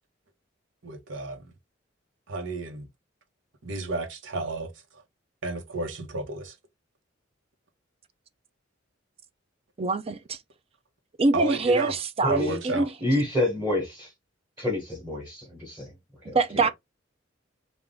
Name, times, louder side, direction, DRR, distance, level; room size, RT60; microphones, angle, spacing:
voice 1, 0.8-1.5 2.3-2.9 3.6-5.0 5.4-6.6 11.3-11.9 12.3-12.9, right 3 dB, 90° right, 1.0 m, -32 dB
voice 2, 9.8-10.4 11.2-12.3 12.6-12.8 16.3-16.7, right 3 dB, 30° right, 0.4 m, -24 dB
voice 3, 12.2-12.6 13.0-14.1 14.6-15.9 16.2-16.3, left 1 dB, 10° right, 1.2 m, -27 dB
3.6 x 2.4 x 3.7 m
head